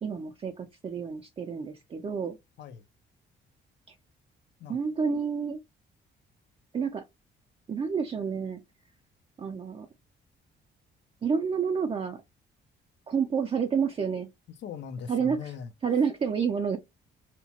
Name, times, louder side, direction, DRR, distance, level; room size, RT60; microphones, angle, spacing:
voice 1, 0.0-2.4 3.9-4.0 4.7-5.6 6.7-7.0 7.7-8.6 9.4-9.9 11.2-12.2 13.1-14.3 15.1-15.5 15.8-16.8, right 6 dB, 30° right, 0.4 m, -29 dB
voice 2, 14.6-15.7, left 6 dB, 65° left, 0.6 m, -39 dB
2.9 x 2.2 x 2.8 m
cardioid pair, 90°, 20 cm